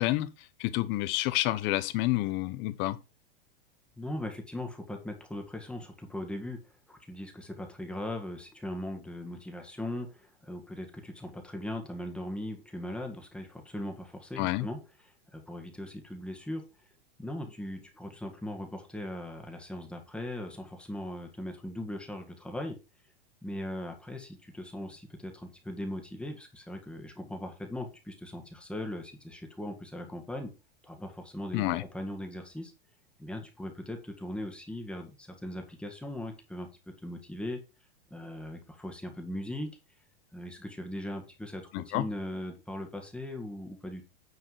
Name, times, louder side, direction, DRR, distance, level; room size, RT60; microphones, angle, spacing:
voice 1, 0.0-3.0 14.4-14.7 31.5-31.8 41.7-42.1, left 17 dB, 40° left, 1.0 m, -29 dB
voice 2, 4.0-6.6 6.9-14.8 15.3-16.6 17.2-22.8 23.4-30.5 30.8-32.7 33.2-36.7 37.0-37.6 38.1-39.8 40.3-44.0, left 1 dB, 5° left, 1.9 m, -39 dB
9.6 x 4.3 x 5.8 m
supercardioid pair, 140°, 29 cm